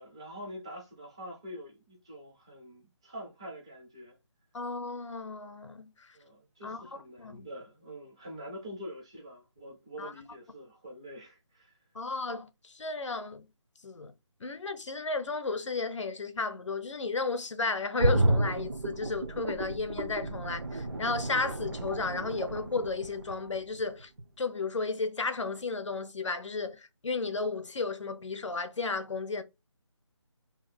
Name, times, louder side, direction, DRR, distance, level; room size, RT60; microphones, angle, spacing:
voice 1, 0.0-4.2 6.1-11.8, equal, 10° right, 0.4 m, -45 dB
voice 2, 4.5-6.1 6.6-7.5 10.0-10.1 11.9-13.5 13.8-14.1 14.4-24.1 24.4-29.4, left 4 dB, 80° left, 0.6 m, -34 dB
sound 1, 18.0-23.8 24.2-24.3, right 2 dB, 50° right, 0.6 m, -31 dB
2.7 x 2.3 x 4.0 m
figure-of-eight pair, 165°, 15 cm